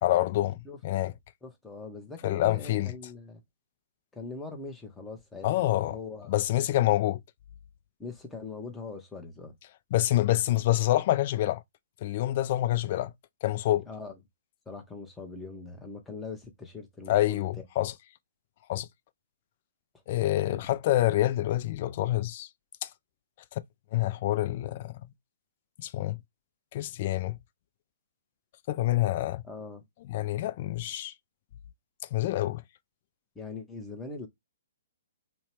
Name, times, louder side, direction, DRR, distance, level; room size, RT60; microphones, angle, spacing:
voice 1, 0.0-1.1 2.2-2.9 5.4-6.0 6.3-7.2 9.9-11.6 12.0-13.1 13.4-13.8 17.1-17.9 18.7-18.9 20.1-22.5 22.8-22.9 23.5-23.6 23.9-25.0 25.8-26.2 26.7-27.4 28.7-29.4 30.1-31.1 32.1-32.6, left 15 dB, 45° left, 0.3 m, -27 dB
voice 2, 1.4-3.4 4.1-6.3 8.0-9.5 13.9-14.2 14.7-17.6 20.5-20.6 29.4-29.8 33.3-34.3, left 4 dB, 10° left, 0.8 m, -41 dB
2.7 x 2.1 x 3.0 m
hypercardioid pair, 130°, 0 cm